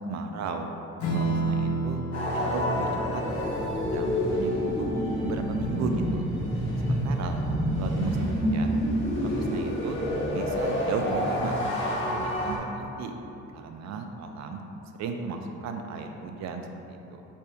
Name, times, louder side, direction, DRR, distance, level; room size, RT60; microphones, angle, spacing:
voice 1, 0.1-0.7 1.1-2.0 2.3-3.2 3.7-4.9 5.2-6.3 6.9-7.4 7.8-8.8 9.2-10.0 10.3-11.5 11.9-13.1 13.5-14.6 15.0-17.2, right 4 dB, 65° right, 5 dB, 0.5 m, -35 dB
Strum, 1.0-7.9, right 2 dB, 70° left, 0.7 m, -33 dB
sound 1, 2.1-12.6, equal, 40° left, 1.0 m, -28 dB
8.3 x 2.8 x 2.3 m, 2.9 s
cardioid pair, 90°, 30 cm